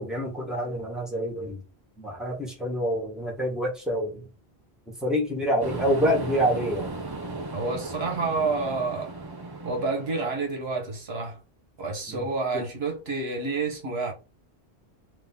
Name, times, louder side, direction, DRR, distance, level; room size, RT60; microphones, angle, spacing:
voice 1, 0.0-1.6 2.0-4.3 4.9-6.9 12.1-12.2 12.5-12.6, equal, ahead, 1.5 m, -27 dB
sound 1, 5.6-10.6, right 2 dB, 25° right, 0.7 m, -36 dB
voice 2, 7.5-9.1 9.6-11.4 11.8-14.1, right 3 dB, 70° right, 1.4 m, -29 dB
3.7 x 2.9 x 3.8 m
omnidirectional pair, 1.1 m